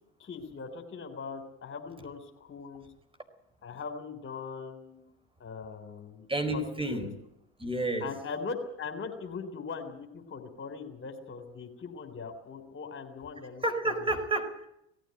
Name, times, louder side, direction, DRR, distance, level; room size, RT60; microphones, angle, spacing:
voice 1, 0.2-2.8 3.6-5.1 5.4-6.3 6.5-6.6 6.9-7.1 8.0-14.1, left 5 dB, 40° left, 6 dB, 3.7 m, -40 dB
voice 2, 6.3-7.1 7.6-8.1 13.6-14.7, right 2 dB, 15° right, 6 dB, 4.7 m, -30 dB
18.5 x 15.0 x 9.2 m, 0.80 s
hypercardioid pair, 65°, 33 cm